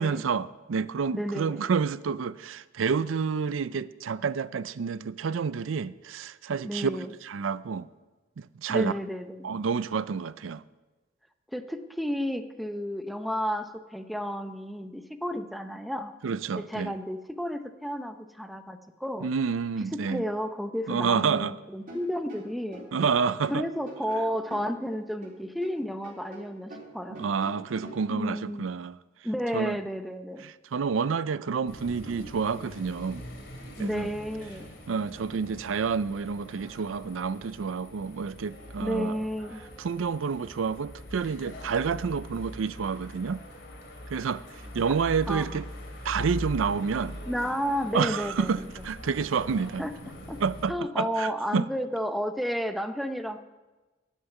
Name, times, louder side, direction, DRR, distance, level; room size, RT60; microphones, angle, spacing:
voice 1, 0.0-7.9 8.4-8.9 9.4-10.6 16.2-16.9 19.2-20.2 20.9-21.5 22.9-23.6 27.1-29.0 29.5-29.8 30.4-33.2 33.8-34.1 34.9-39.2 39.8-43.4 44.1-44.4 44.7-45.7 46.0-47.2 47.9-48.6 48.8-49.8 50.4-51.6, right 5 dB, 80° right, 0.4 m, -29 dB
voice 2, 1.1-1.6 6.6-7.1 8.7-9.6 11.5-16.1 16.5-19.3 19.9-22.8 23.5-27.2 28.1-28.7 29.2-30.4 33.8-34.7 38.8-39.6 44.8-44.9 45.3-45.6 47.3-48.7 49.8-49.9 50.3-50.4 50.7-53.4, equal, ahead, 0.7 m, -32 dB
sound 1, 21.8-25.8 26.0-28.1, right 1 dB, 45° right, 3.7 m, -44 dB
sound 2, 31.7-50.7, left 1 dB, 65° left, 2.7 m, -43 dB
13.0 x 6.5 x 9.2 m
head